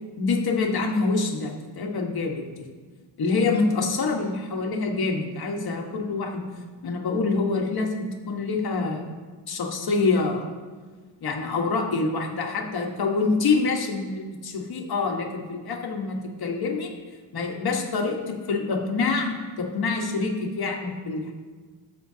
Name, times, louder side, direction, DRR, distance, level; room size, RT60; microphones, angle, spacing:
voice 1, 0.2-2.7 3.2-6.4 6.8-9.1 9.5-10.5 11.2-16.9 17.3-21.3, left 4 dB, 50° left, 1 dB, 1.5 m, -26 dB
17.0 x 7.5 x 2.8 m, 1.5 s
cardioid pair, 155°, 49 cm